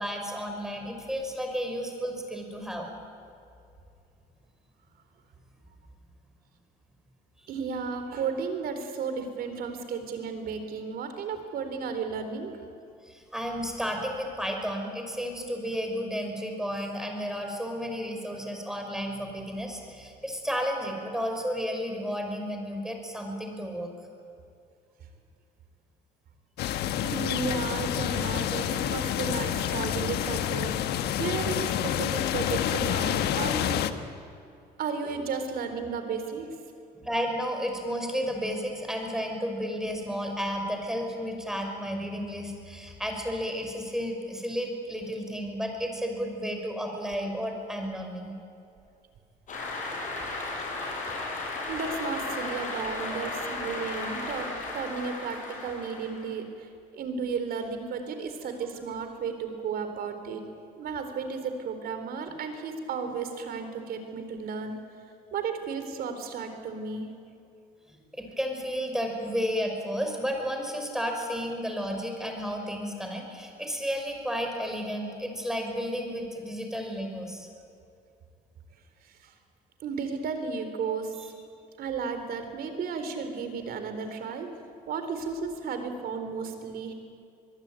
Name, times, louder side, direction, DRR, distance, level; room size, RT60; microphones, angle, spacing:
voice 1, 0.0-2.9 13.0-23.9 37.0-48.3 67.9-77.5, equal, 5° right, 3 dB, 5.7 m, -32 dB
voice 2, 7.5-12.6 27.0-30.9 31.2-33.8 34.8-36.6 51.7-60.4 60.8-64.8 65.3-67.1 79.0-79.3 79.8-81.3 81.8-84.5 84.9-86.9, right 5 dB, 65° right, 7 dB, 4.1 m, -34 dB
sound 1, 26.6-33.9, left 10 dB, 75° left, 1.3 m, -28 dB
Cheering / Applause, 49.5-56.3, left 2 dB, 50° left, 7.9 m, -35 dB
25.0 x 21.5 x 9.1 m, 2.5 s
cardioid pair, 110°, 17 cm